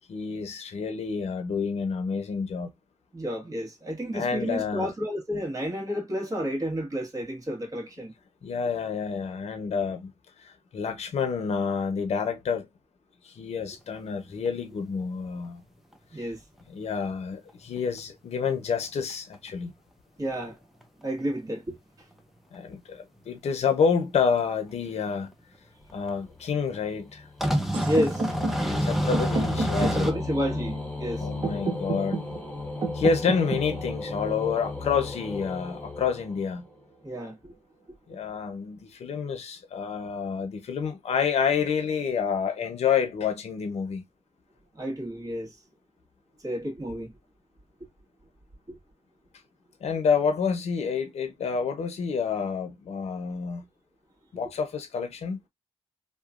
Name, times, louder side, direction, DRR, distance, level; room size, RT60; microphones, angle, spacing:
voice 1, 0.1-2.7 4.1-4.9 8.4-10.1 10.4-12.7 13.2-15.6 16.2-16.3 16.7-19.7 22.5-25.3 25.9-27.3 28.8-30.1 31.2-32.2 32.9-36.6 38.1-44.0 49.8-53.6 54.3-55.4, left 6 dB, 70° left, 0.8 m, -28 dB
voice 2, 3.1-8.1 16.1-16.4 20.2-20.6 21.0-21.8 27.8-28.2 29.8-31.3 37.0-37.5 44.7-45.5 46.4-47.1 48.7-48.8, equal, 30° right, 1.4 m, -30 dB
sound 1, 13.9-14.0 14.5-14.6 17.5-17.6 17.8-17.9 19.0-19.3 20.8-20.9 21.2-21.3 22.5-22.6 24.3-24.4 25.3-25.4 25.9-26.1 27.4-30.1, equal, ahead, 0.6 m, -27 dB
sound 2, 25.9-36.8, left 3 dB, 15° left, 1.0 m, -36 dB
sound 3, 27.7-35.7, right 3 dB, 50° right, 1.0 m, -33 dB
2.9 x 2.3 x 2.4 m
cardioid pair, 60°, 11 cm